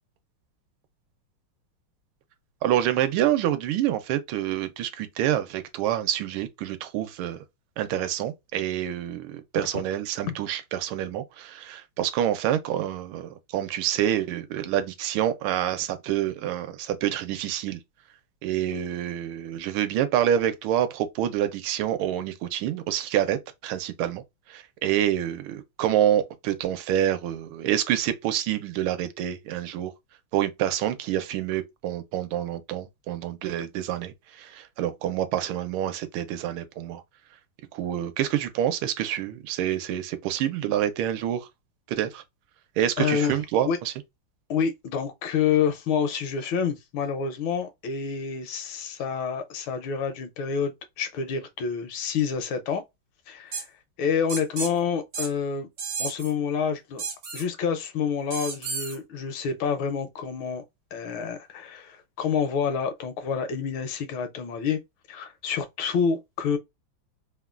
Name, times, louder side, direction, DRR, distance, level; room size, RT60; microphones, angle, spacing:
voice 1, 2.6-7.4 7.8-17.8 18.4-24.2 24.5-29.9 30.3-37.0 37.7-41.5 41.9-42.2 42.8-43.9, right 11 dB, 85° right, 1.4 m, -27 dB
voice 2, 43.0-43.4 43.6-43.8 44.5-52.8 53.3-53.7 54.0-55.7 56.0-57.0 57.3-60.6 60.9-64.8 65.1-66.6, left 6 dB, 80° left, 1.4 m, -28 dB
sound 1, 53.5-53.6 54.3-54.7 55.1-55.3 55.8-56.3 57.0-57.4 58.3-59.0, right 4 dB, 60° right, 0.8 m, -32 dB
3.5 x 2.2 x 2.3 m
omnidirectional pair, 2.3 m